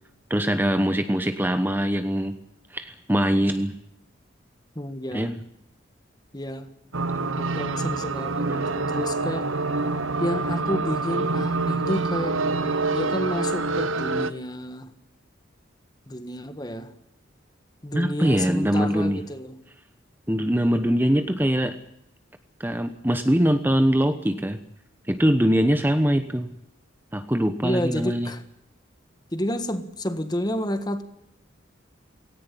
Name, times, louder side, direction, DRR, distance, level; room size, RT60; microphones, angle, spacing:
voice 1, 0.3-2.3 2.7-3.7 5.1-5.4 8.5-8.6 17.9-19.2 20.3-21.8 22.6-24.6 25.1-26.5 27.1-28.3, equal, 10° right, 9 dB, 1.0 m, -22 dB
voice 2, 4.7-5.3 6.3-6.7 7.4-9.5 10.2-12.5 12.9-14.9 16.1-16.9 17.8-19.6 27.6-28.4 29.3-31.0, left 1 dB, 20° left, 10 dB, 1.5 m, -30 dB
sound 1, 6.9-14.3, right 3 dB, 90° right, 1.2 m, -26 dB
18.0 x 18.0 x 9.8 m, 0.79 s
head